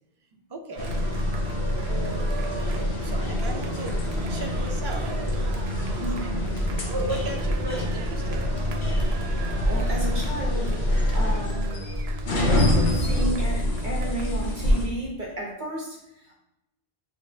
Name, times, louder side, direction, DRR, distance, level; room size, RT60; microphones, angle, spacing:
voice 1, 0.5-0.9 2.6-5.2 5.7-6.7 6.9-8.6 13.2-13.3, right 2 dB, 35° right, 3 dB, 0.4 m, -36 dB
Cheering, 0.7-14.6, right 6 dB, 80° right, 0.8 m, -40 dB
sound 1, 0.8-14.9, left 1 dB, 85° left, 1.2 m, -26 dB
voice 2, 6.0-6.4 9.7-10.8 11.1-11.8 12.3-16.3, equal, 50° right, -2 dB, 1.1 m, -32 dB
6.6 x 3.0 x 2.7 m, 0.87 s
omnidirectional pair, 1.1 m